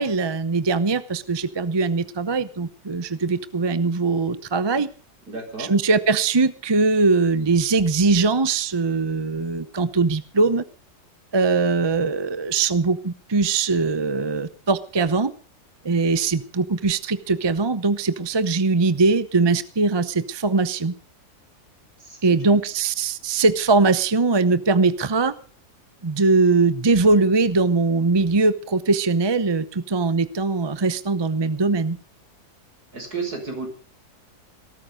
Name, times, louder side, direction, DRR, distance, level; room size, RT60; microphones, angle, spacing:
voice 1, 0.0-4.9 5.6-10.6 11.3-15.3 15.8-20.9 22.2-25.3 26.0-32.0, right 3 dB, 25° right, 14 dB, 0.6 m, -21 dB
voice 2, 5.3-5.7 22.0-22.4 32.9-33.7, right 4 dB, 75° right, 4 dB, 5.8 m, -32 dB
18.0 x 13.5 x 5.2 m, 0.38 s
omnidirectional pair, 1.7 m